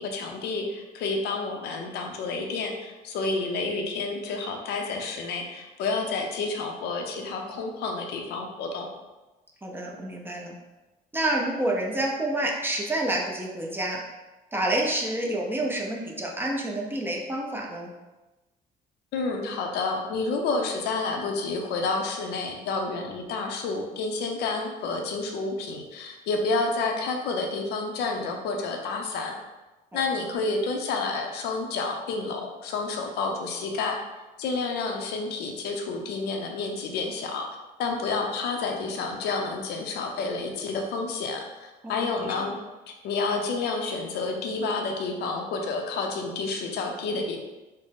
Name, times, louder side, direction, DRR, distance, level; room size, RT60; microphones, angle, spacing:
voice 1, 0.0-8.9 19.1-29.3 29.9-34.0 34.4-42.5 43.0-47.4, left 3 dB, 80° left, 3 dB, 0.6 m, -29 dB
voice 2, 9.6-10.5 11.1-14.0 14.5-17.9 29.9-30.0 41.8-42.1 42.4-42.5, right 1 dB, 10° right, -1 dB, 0.6 m, -28 dB
3.8 x 2.1 x 3.6 m, 1.1 s
cardioid pair, 110°, 17 cm